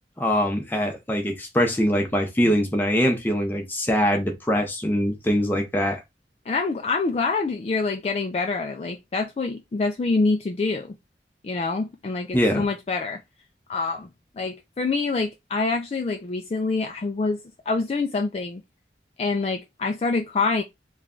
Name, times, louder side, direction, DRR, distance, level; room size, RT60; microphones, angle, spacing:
voice 1, 0.2-6.0 12.3-12.6, equal, 10° left, 0.7 m, -23 dB
voice 2, 6.5-10.9 11.4-13.2 13.7-14.1 14.4-18.6 19.2-20.6, left 3 dB, 35° left, 0.3 m, -26 dB
3.2 x 2.3 x 3.6 m
head